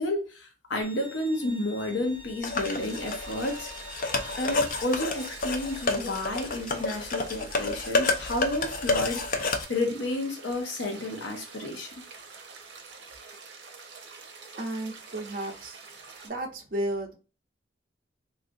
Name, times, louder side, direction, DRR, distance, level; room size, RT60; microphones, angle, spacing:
voice 1, 0.0-3.7 4.4-12.0, left 1 dB, 85° left, 0.7 m, -31 dB
Bowed string instrument, 0.8-5.8, left 1 dB, 15° right, 0.7 m, -47 dB
sound 1, 2.4-9.6, left 3 dB, 45° left, 0.4 m, -29 dB
sound 2, 2.5-16.3, right 4 dB, 80° right, 0.7 m, -47 dB
voice 2, 14.6-15.8 16.2-17.1, right 1 dB, 50° right, 0.7 m, -33 dB
3.2 x 2.6 x 2.6 m
head